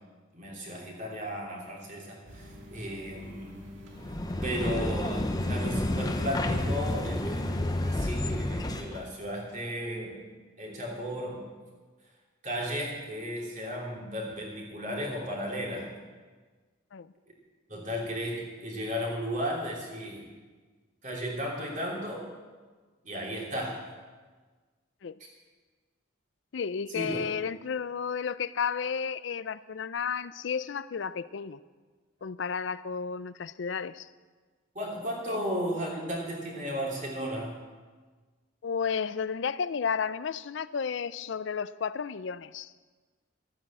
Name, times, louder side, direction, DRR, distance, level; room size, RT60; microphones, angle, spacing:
voice 1, 0.3-3.5 4.4-7.5 7.8-10.2 10.6-11.4 12.4-15.9 17.7-20.2 21.0-22.3 23.0-23.9 26.9-27.2 34.7-37.5, equal, 40° right, -2 dB, 3.2 m, -34 dB
sound 1, 2.3-7.9, left 1 dB, 70° right, 2.1 m, -47 dB
sound 2, 4.0-9.0, left 1 dB, 20° left, 0.7 m, -30 dB
voice 2, 26.5-31.6 32.2-34.1 35.3-35.5 38.6-42.7, left 6 dB, 65° left, 16 dB, 0.4 m, -32 dB
13.5 x 8.9 x 7.4 m, 1.4 s
head